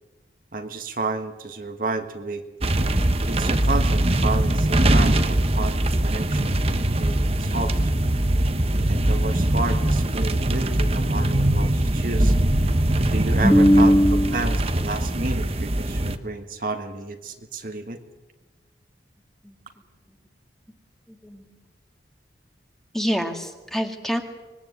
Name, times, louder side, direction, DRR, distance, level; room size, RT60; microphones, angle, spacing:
voice 1, 0.5-2.4 3.2-8.0 8.9-12.3 12.6-12.7 13.1-13.9 14.3-18.0, right 3 dB, 50° right, 6 dB, 1.5 m, -31 dB
sound 1, 2.6-16.2, right 1 dB, 35° right, 1.0 m, -22 dB
voice 2, 13.4-14.5 19.4-19.6 21.1-21.4 22.9-24.2, equal, ahead, 4 dB, 1.9 m, -20 dB
25.0 x 20.5 x 8.3 m, 1.2 s
head